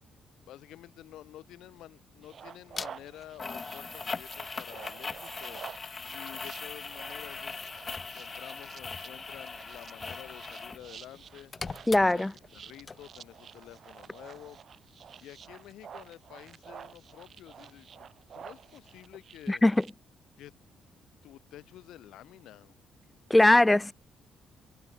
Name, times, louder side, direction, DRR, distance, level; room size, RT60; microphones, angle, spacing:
voice 1, 0.5-5.6 6.1-14.6 15.2-19.6 20.4-20.5 21.2-22.7, left 13 dB, 85° left, 6.7 m, -50 dB
sound 1, 2.2-19.9, right 7 dB, 55° right, 2.0 m, -50 dB
sound 2, 2.8-2.9 3.4-10.8 11.1-12.6 12.9-13.0, left 4 dB, 30° left, 5.3 m, -40 dB
voice 2, 11.9-12.3 19.5-19.7 23.3-23.9, left 1 dB, 10° left, 0.6 m, -20 dB
cardioid pair, 90°, 0 cm